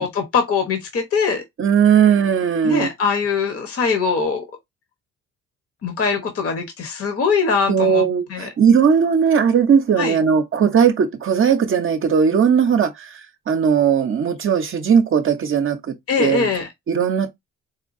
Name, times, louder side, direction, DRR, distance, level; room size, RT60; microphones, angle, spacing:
voice 1, 0.0-1.4 2.6-4.4 5.8-8.5 10.0-10.2 16.1-16.7, left 5 dB, 50° left, 0.9 m, -22 dB
voice 2, 1.6-2.9 7.7-13.2 13.5-16.5 16.9-17.3, right 7 dB, 45° right, 0.6 m, -18 dB
4.3 x 2.2 x 2.5 m
cardioid pair, 90°, 30 cm